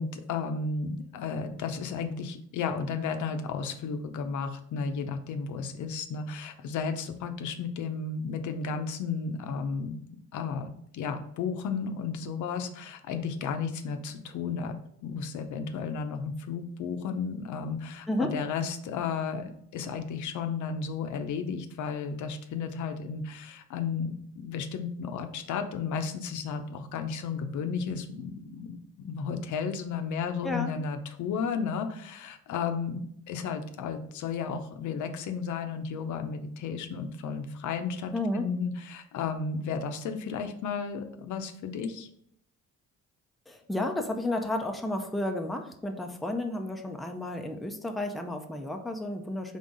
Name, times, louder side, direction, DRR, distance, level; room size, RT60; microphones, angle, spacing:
voice 1, 0.0-10.0 10.3-14.8 15.0-42.1, left 5 dB, 75° left, 7 dB, 0.6 m, -33 dB
voice 2, 18.1-18.4 30.4-30.7 38.1-38.5 43.5-49.6, left 1 dB, ahead, 4 dB, 0.5 m, -32 dB
3.8 x 3.6 x 3.8 m, 0.68 s
cardioid pair, 90°, 30 cm